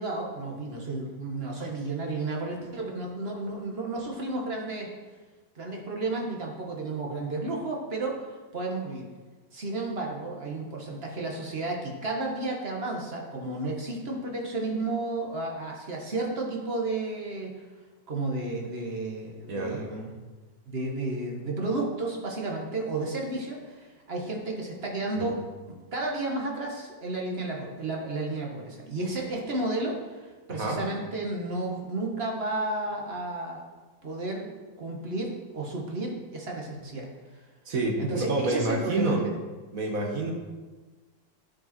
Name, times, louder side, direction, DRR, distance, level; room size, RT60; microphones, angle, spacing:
voice 1, 0.0-4.9 5.5-9.0 9.5-17.5 18.1-20.1 20.7-25.4 25.9-33.7 34.0-34.5 34.8-37.1 38.0-39.2, right 2 dB, 35° right, -1 dB, 1.6 m, -32 dB
voice 2, 19.5-19.8 25.2-25.3 30.5-30.8 37.6-39.2 39.7-40.3, right 2 dB, 50° right, 1 dB, 1.5 m, -28 dB
10.0 x 8.2 x 4.4 m, 1.3 s
omnidirectional pair, 2.1 m